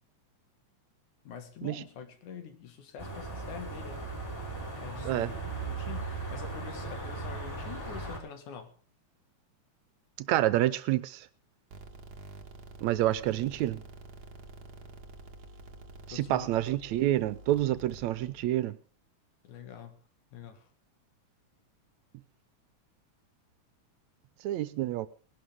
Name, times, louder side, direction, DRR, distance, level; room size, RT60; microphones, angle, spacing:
voice 1, 1.2-4.1 4.8-8.7 16.1-16.5 19.4-20.0 20.3-20.7, left 7 dB, 85° left, 3.3 m, -45 dB
sound 1, 3.0-8.2, right 3 dB, 5° left, 4.4 m, -38 dB
voice 2, 10.2-11.3 12.8-13.8 16.1-18.8 24.4-25.1, right 14 dB, 75° right, 2.1 m, -28 dB
sound 2, 11.7-18.5, right 2 dB, 45° right, 1.5 m, -49 dB
19.5 x 12.0 x 3.6 m
omnidirectional pair, 3.4 m